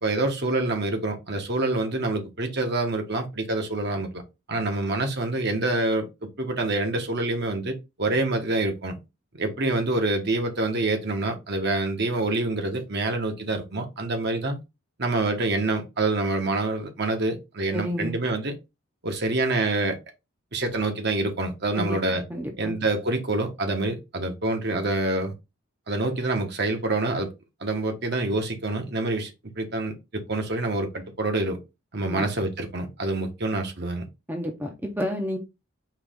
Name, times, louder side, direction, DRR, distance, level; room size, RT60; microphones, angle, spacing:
voice 1, 0.0-4.2 4.5-6.0 6.4-8.9 9.3-14.6 15.0-18.5 19.0-20.0 20.5-22.2 22.6-25.3 25.9-27.3 27.6-29.9 30.3-31.6 31.9-34.0, right 2 dB, 50° right, 1.1 m, -26 dB
voice 2, 17.7-18.1 21.7-22.8 32.1-32.2 34.3-35.4, equal, 10° right, 0.6 m, -30 dB
4.7 x 3.0 x 3.6 m
head